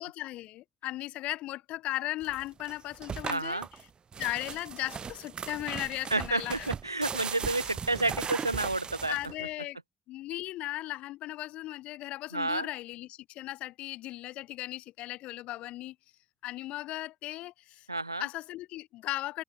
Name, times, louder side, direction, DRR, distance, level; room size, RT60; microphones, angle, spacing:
voice 1, 0.0-3.6 4.2-6.7 9.1-9.8 10.1-15.9 16.4-17.9 18.2-19.4, left 16 dB, 65° left, 4.5 m, -37 dB
sound 1, 2.2-9.5, right 6 dB, 40° right, 2.7 m, -38 dB
voice 2, 3.3-3.7 6.1-9.2 12.3-12.7 17.9-18.3, right 2 dB, 90° right, 0.6 m, -30 dB
figure-of-eight pair, 40°, 2 cm